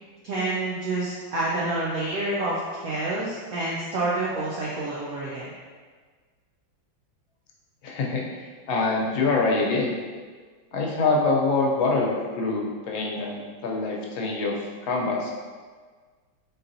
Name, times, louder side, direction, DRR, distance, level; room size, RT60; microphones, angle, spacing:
voice 1, 0.2-5.5, right 2 dB, 75° right, -5 dB, 0.8 m, -28 dB
voice 2, 7.8-9.9 10.7-14.6 14.8-15.3, left 3 dB, 80° left, -1 dB, 1.5 m, -25 dB
4.1 x 3.9 x 2.6 m, 1.5 s
omnidirectional pair, 2.2 m